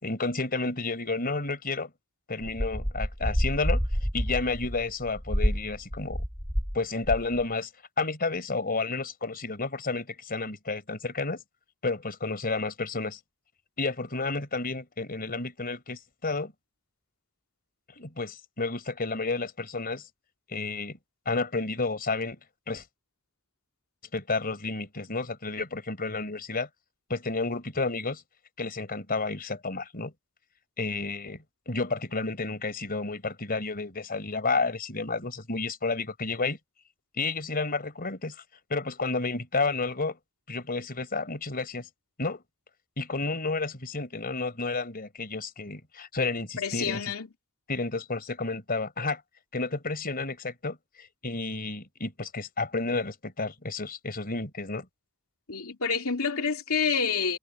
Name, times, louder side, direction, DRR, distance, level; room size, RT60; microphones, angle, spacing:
voice 1, 0.0-1.9 2.3-3.8 4.1-6.2 6.7-7.7 8.0-11.4 11.8-13.2 13.8-16.5 18.0-20.0 20.5-21.0 21.3-22.4 22.7-22.8 24.1-26.7 27.1-28.2 28.6-30.1 30.8-36.6 37.2-38.4 38.7-40.2 40.5-41.9 42.2-42.4 43.0-47.0 47.7-49.2 49.5-50.8 51.2-54.9, left 3 dB, 45° left, 4.6 m, -31 dB
sound 1, 2.4-6.8 7.0-7.4, equal, 5° left, 3.2 m, -28 dB
voice 2, 46.6-47.3 55.5-57.4, left 5 dB, 70° left, 2.9 m, -28 dB
head